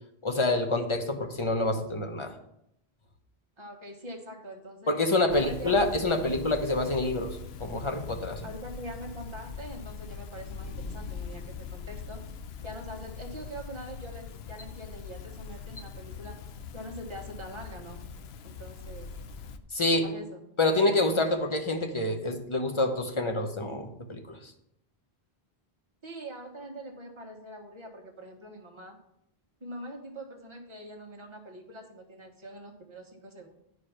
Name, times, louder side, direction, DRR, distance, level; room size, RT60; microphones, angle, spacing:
voice 1, 0.2-2.3 4.9-8.5 19.7-20.1 20.6-24.4, left 2 dB, 30° left, 5 dB, 0.9 m, -27 dB
voice 2, 3.6-4.9 5.3-5.8 6.2-6.4 8.4-12.2 12.6-16.4 16.7-18.0 18.4-19.1 20.0-20.4 26.0-29.0 29.6-33.5, right 1 dB, 30° right, 1 dB, 1.4 m, -43 dB
sound 1, 5.3-19.6, left 6 dB, 85° left, 0.9 m, -42 dB
9.3 x 5.0 x 5.7 m, 0.79 s
omnidirectional pair, 1.0 m